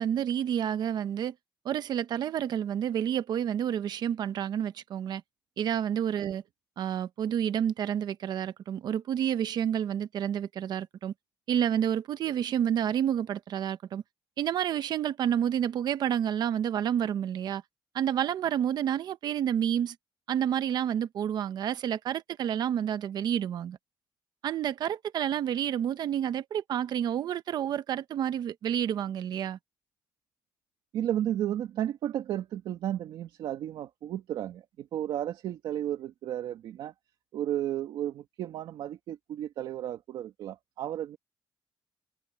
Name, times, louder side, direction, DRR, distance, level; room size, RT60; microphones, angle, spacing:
voice 1, 0.0-1.3 1.6-5.2 5.6-6.4 6.8-11.1 11.5-14.0 14.4-17.6 17.9-20.0 20.3-23.8 24.4-29.6, right 9 dB, 60° right, 1.0 m, -29 dB
voice 2, 30.9-36.9 37.3-41.2, right 11 dB, 80° right, 2.0 m, -33 dB
cardioid pair, 165°, 8 cm